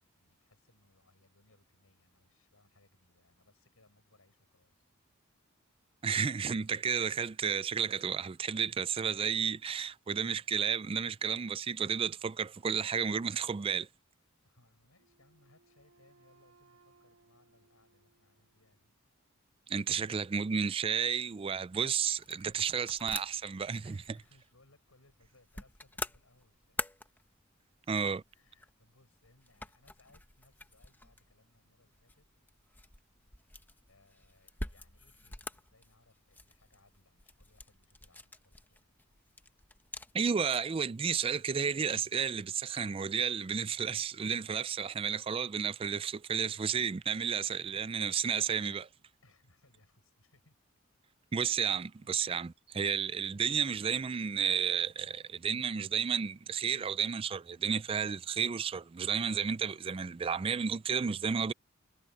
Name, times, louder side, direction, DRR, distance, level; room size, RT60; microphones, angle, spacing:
voice 1, 0.2-4.9 14.4-18.9 22.0-22.9 23.8-27.0 28.3-32.3 33.9-39.0 47.3-48.2 48.5-48.8 49.2-50.6 51.4-51.7 52.0-52.1, left 2 dB, 80° left, 7.0 m, -67 dB
voice 2, 6.0-13.9 19.7-24.0 27.9-28.2 40.1-48.8 51.3-61.5, right 7 dB, 25° right, 0.3 m, -32 dB
Wind instrument woodwind instrument, 15.0-18.9, right 3 dB, 70° right, 4.2 m, -67 dB
sound 1, 21.9-40.8, left 2 dB, 10° left, 0.9 m, -47 dB
head